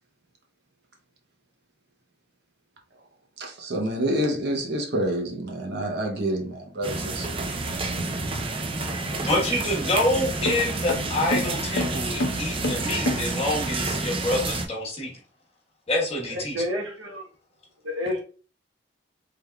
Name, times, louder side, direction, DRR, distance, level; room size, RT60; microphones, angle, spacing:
voice 1, 3.4-7.3 9.5-9.6, right 1 dB, 60° right, 0.7 m, -27 dB
sound 1, 6.8-14.7, right 3 dB, 30° right, 0.4 m, -29 dB
sound 2, 9.1-13.7, left 1 dB, 60° left, 0.7 m, -32 dB
voice 2, 9.2-15.1 15.9-16.6, left 1 dB, 30° left, 1.1 m, -26 dB
voice 3, 16.3-17.2 17.8-18.2, left 1 dB, 85° right, 0.9 m, -29 dB
3.4 x 3.4 x 2.2 m
head